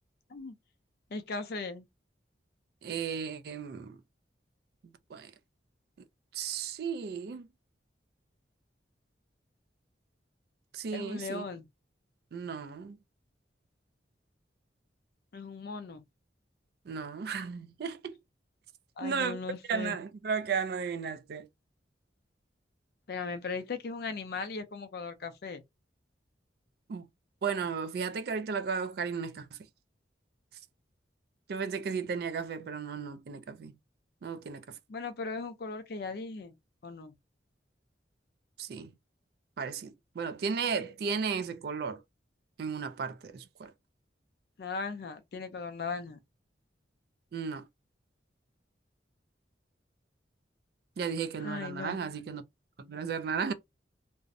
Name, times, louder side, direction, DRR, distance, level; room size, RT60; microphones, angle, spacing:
voice 1, 1.1-1.8 10.9-11.7 15.3-16.0 19.0-20.0 23.1-25.6 34.9-36.5 36.8-37.1 44.6-46.2 51.4-52.0, left 4 dB, 55° left, 0.4 m, -38 dB
voice 2, 2.8-4.0 5.1-5.3 6.3-7.5 10.7-11.5 12.3-13.0 16.9-18.2 19.0-19.4 19.7-21.5 26.9-27.1 27.4-29.6 31.5-33.7 34.2-34.8 38.6-38.9 39.6-42.0 42.6-43.7 47.3-47.7 51.0-52.4 52.8-53.5, right 6 dB, 55° right, 0.3 m, -34 dB
2.5 x 2.0 x 2.5 m
head